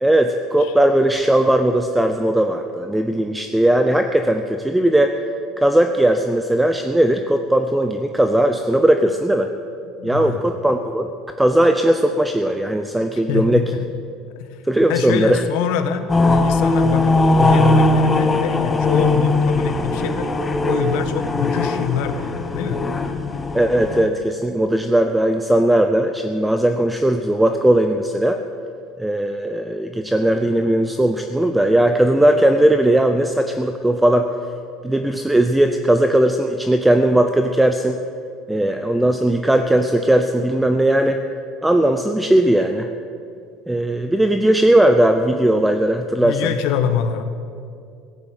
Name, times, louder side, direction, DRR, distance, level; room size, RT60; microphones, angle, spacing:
voice 1, 0.0-5.1 5.6-9.5 10.0-11.1 11.4-13.6 14.7-15.4 23.5-28.4 29.0-34.3 34.8-38.0 38.5-41.2 41.6-42.9 43.7-46.5, right 1 dB, 5° right, 7 dB, 0.5 m, -18 dB
voice 2, 10.0-10.4 13.1-13.9 14.4-20.3 20.6-22.8 46.2-47.2, left 8 dB, 75° left, 9 dB, 1.2 m, -25 dB
sound 1, 16.1-24.1, left 2 dB, 15° left, 0.9 m, -19 dB
16.0 x 9.0 x 8.1 m, 2.4 s
cardioid pair, 155°, 0 cm